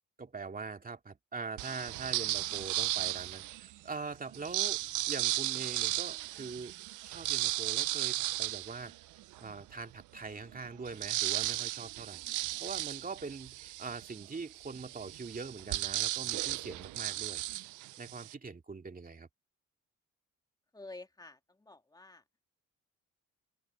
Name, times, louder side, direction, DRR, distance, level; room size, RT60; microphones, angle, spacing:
voice 1, 0.2-4.8 5.1-6.7 7.0-9.0 9.4-12.2 12.6-17.4 18.0-19.3, right 4 dB, 30° right, 2.5 m, -43 dB
sound 1, 1.6-3.7 4.3-9.5 10.0-10.1 10.3-18.3, right 17 dB, 85° right, 0.6 m, -35 dB
voice 2, 20.7-22.2, left 2 dB, 15° left, 1.8 m, -50 dB
open air
cardioid pair, 90°, 30 cm